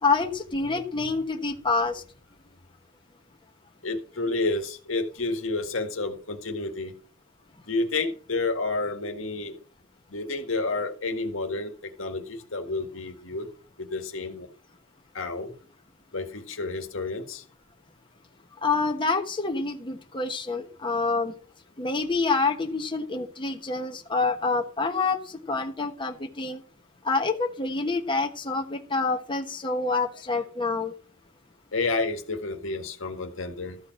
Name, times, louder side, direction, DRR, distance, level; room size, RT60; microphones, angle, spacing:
voice 1, 0.0-2.0 18.6-21.3 21.8-25.2 25.5-26.6 27.0-30.9, left 3 dB, 25° left, 4 dB, 1.2 m, -27 dB
voice 2, 3.8-6.9 7.7-9.6 10.1-13.5 13.8-14.5 15.1-15.5 16.1-17.4 31.7-33.8, left 3 dB, 75° left, 6 dB, 1.7 m, -30 dB
13.5 x 4.7 x 7.5 m, 0.42 s
head